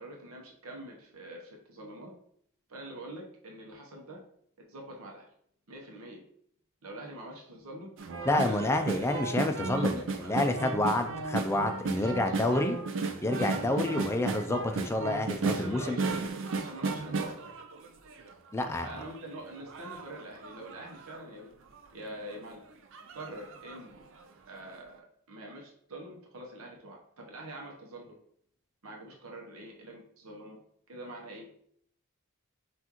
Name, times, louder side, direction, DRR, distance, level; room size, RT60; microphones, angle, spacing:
voice 1, 0.0-2.1 2.7-4.2 4.7-5.3 5.7-6.2 6.8-7.9 8.4-9.2 9.6-10.4 11.9-12.7 13.3-14.0 15.4-17.5 18.6-21.5 21.9-22.6 23.1-24.0 24.5-28.2 28.8-30.6 30.9-31.5, right 1 dB, 80° right, 0 dB, 0.8 m, -45 dB
sound 1, 8.0-18.3 18.8-21.2 21.7-21.8 22.1-22.4 22.9-23.9 24.2-24.3, right 3 dB, 60° right, 0.5 m, -35 dB
voice 2, 8.2-12.8 13.2-16.0 18.5-18.9, left 1 dB, 10° left, 5 dB, 0.3 m, -29 dB
5.8 x 2.5 x 2.9 m, 0.67 s
head